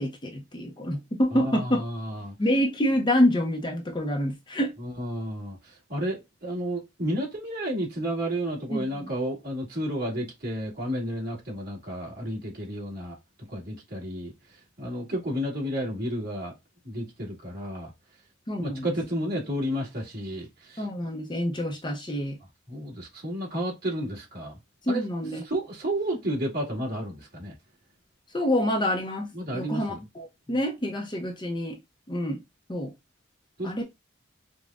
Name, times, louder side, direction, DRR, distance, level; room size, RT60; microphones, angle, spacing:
voice 1, 0.0-1.8 2.4-4.7 8.7-9.1 18.5-18.9 20.8-22.4 24.9-25.4 28.3-31.8 32.1-32.4 32.7-32.9 33.6-33.8, equal, 25° left, 0.6 m, -27 dB
voice 2, 1.3-2.4 4.8-13.2 13.5-16.5 16.8-17.9 18.6-20.9 22.7-24.6 24.9-25.1 25.4-27.5 29.3-30.0 30.5-30.6 33.6-33.8, equal, 50° right, 2.0 m, -32 dB
5.0 x 2.2 x 2.4 m
head